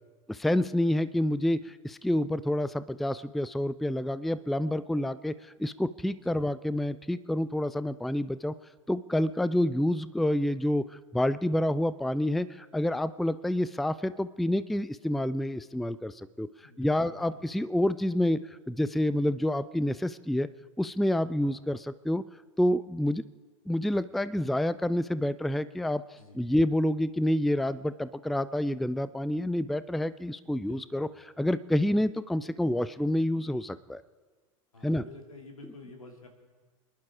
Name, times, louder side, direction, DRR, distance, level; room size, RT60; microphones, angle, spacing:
voice 1, 0.3-5.3 5.6-8.5 8.9-10.8 11.1-16.5 16.8-18.4 18.7-20.5 20.8-22.2 22.6-23.2 23.7-26.0 26.3-34.0 34.8-35.0, left 1 dB, ahead, 16 dB, 0.4 m, -28 dB
voice 2, 16.6-17.5 21.4-21.7 26.1-26.5 30.4-31.1 34.7-36.3, left 3 dB, 85° left, 3 dB, 2.5 m, -50 dB
26.0 x 11.0 x 4.8 m, 1.3 s
figure-of-eight pair, 85°, 17 cm